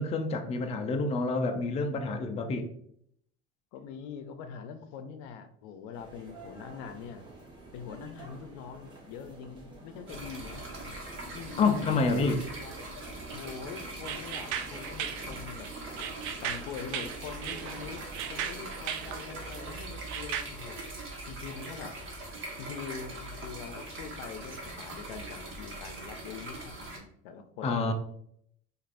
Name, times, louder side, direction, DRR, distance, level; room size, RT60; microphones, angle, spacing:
voice 1, 0.0-2.7 11.6-12.4 27.6-27.9, left 3 dB, 20° left, 5 dB, 0.4 m, -28 dB
voice 2, 3.7-7.3 7.7-10.7 11.2-12.7 13.3-15.7 16.4-20.8 21.3-22.0 22.6-27.9, left 6 dB, 80° left, 9 dB, 0.6 m, -43 dB
sound 1, 5.9-19.7, right 2 dB, 15° right, 1.1 m, -50 dB
sound 2, 10.1-27.0, right 2 dB, 45° right, 1.2 m, -42 dB
sound 3, 14.0-20.4, right 9 dB, 75° right, 0.5 m, -37 dB
4.7 x 2.5 x 2.5 m, 0.68 s
cardioid pair, 130°, 29 cm